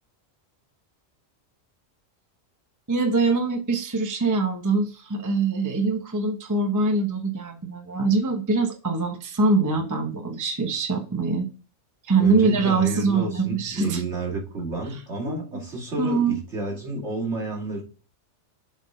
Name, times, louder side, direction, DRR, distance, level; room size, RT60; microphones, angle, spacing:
voice 1, 2.9-11.5 12.0-14.0 15.3-15.6 16.0-16.4, right 3 dB, 15° right, 0.8 m, -23 dB
voice 2, 12.2-17.8, right 2 dB, 60° right, 2.8 m, -30 dB
7.5 x 3.7 x 5.0 m
omnidirectional pair, 1.3 m